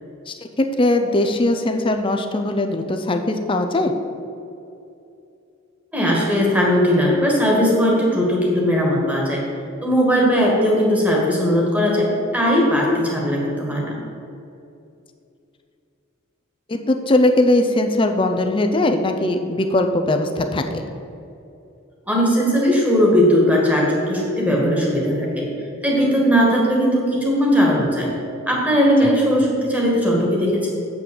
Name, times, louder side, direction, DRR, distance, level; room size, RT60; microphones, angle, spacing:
voice 1, 0.3-3.9 16.7-20.8, left 1 dB, 25° left, 5 dB, 0.5 m, -20 dB
voice 2, 5.9-9.4 9.8-14.0 22.1-25.5 25.8-28.1 28.5-30.7, equal, 5° right, -2 dB, 1.7 m, -18 dB
7.9 x 5.9 x 6.8 m, 2.6 s
head